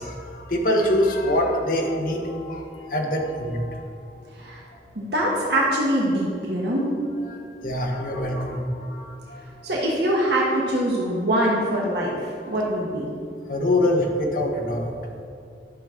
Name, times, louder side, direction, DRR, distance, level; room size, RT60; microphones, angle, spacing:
voice 1, 0.0-4.1 6.6-6.8 7.2-9.7 12.5-12.6 13.5-14.9, left 1 dB, 50° left, 0 dB, 1.2 m, -25 dB
voice 2, 5.0-6.9 9.6-12.2 12.5-13.1, right 1 dB, 70° right, -3 dB, 1.2 m, -23 dB
11.5 x 6.0 x 3.7 m, 2.4 s
head